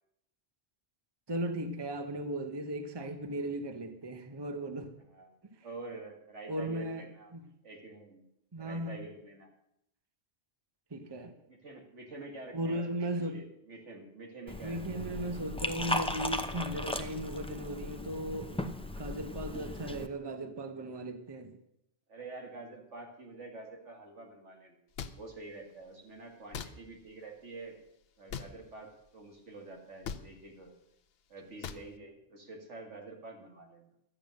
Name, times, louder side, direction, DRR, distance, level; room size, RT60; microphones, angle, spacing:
voice 1, 1.3-4.9 6.5-7.0 7.3-7.4 8.5-9.0 10.9-11.3 12.5-13.4 14.6-21.6, right 1 dB, 25° right, 0.9 m, -37 dB
voice 2, 5.0-5.3 5.6-7.3 7.6-8.2 8.6-9.5 11.5-15.1 22.1-24.8 25.1-27.8 28.2-30.7 31.3-33.9, right 3 dB, 80° right, 2.4 m, -47 dB
Liquid, 14.5-20.1, left 1 dB, 5° left, 0.5 m, -37 dB
sound 1, 25.0-25.1 26.5-26.7 28.3-28.5 30.0-30.2 31.6-31.8, left 7 dB, 60° left, 0.9 m, -39 dB
12.0 x 8.8 x 6.5 m
omnidirectional pair, 1.2 m